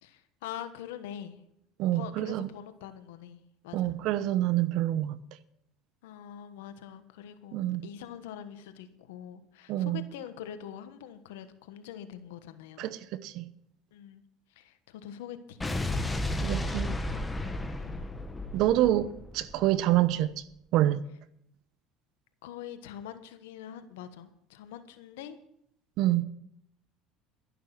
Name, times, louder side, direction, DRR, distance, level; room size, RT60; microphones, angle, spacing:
voice 1, 0.0-1.4 1.9-3.9 6.0-12.8 13.9-14.2 14.5-15.7 17.8-18.1 22.4-25.4, left 10 dB, 85° left, 1.3 m, -44 dB
voice 2, 1.8-2.5 3.7-5.2 7.5-7.9 9.7-10.0 12.8-13.5 16.4-16.9 18.5-20.4 20.7-21.0 26.0-26.2, right 14 dB, 65° right, 0.9 m, -27 dB
Explosion, 15.6-19.9, left 1 dB, 15° left, 1.4 m, -33 dB
12.0 x 11.0 x 6.0 m
supercardioid pair, 95°, 0 cm